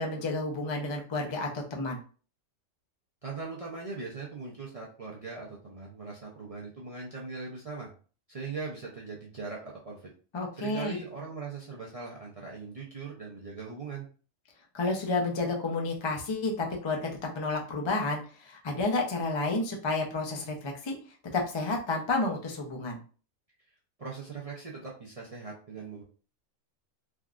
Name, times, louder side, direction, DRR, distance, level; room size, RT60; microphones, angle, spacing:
voice 1, 0.0-2.0 10.3-11.0 14.7-21.0 21.3-23.0, left 2 dB, 45° left, 0 dB, 0.3 m, -31 dB
voice 2, 3.2-7.9 8.3-10.1 10.6-14.1 24.0-26.0, right 4 dB, 45° right, -4 dB, 0.5 m, -40 dB
3.6 x 2.3 x 2.4 m, 0.38 s
omnidirectional pair, 1.3 m